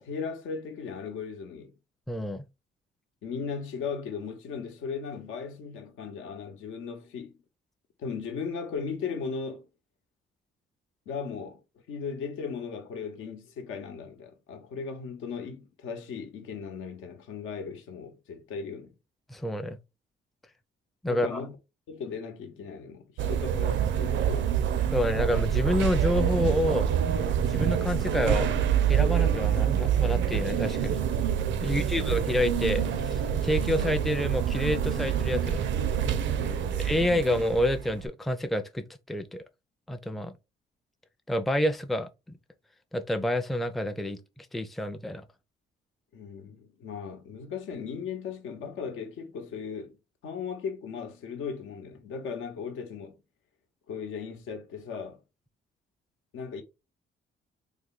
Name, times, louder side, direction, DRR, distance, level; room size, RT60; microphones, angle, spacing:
voice 1, 0.0-1.7 3.2-7.3 8.0-9.7 11.1-11.6 11.9-18.9 21.0-21.6 21.9-24.5 31.6-32.1 36.3-37.1 46.1-50.0 50.2-53.2 53.9-55.2 56.3-56.6, left 6 dB, 85° left, 0.9 m, -37 dB
voice 2, 2.1-2.5 19.3-19.8 21.0-21.4 24.9-26.9 27.5-28.5 28.9-31.0 31.6-35.7 36.8-39.4 39.9-40.3 41.3-42.4 42.9-45.2, left 1 dB, ahead, 0.4 m, -28 dB
sound 1, 23.2-38.1, right 9 dB, 70° right, 0.5 m, -26 dB
3.3 x 2.2 x 3.8 m
cardioid pair, 90°, 20 cm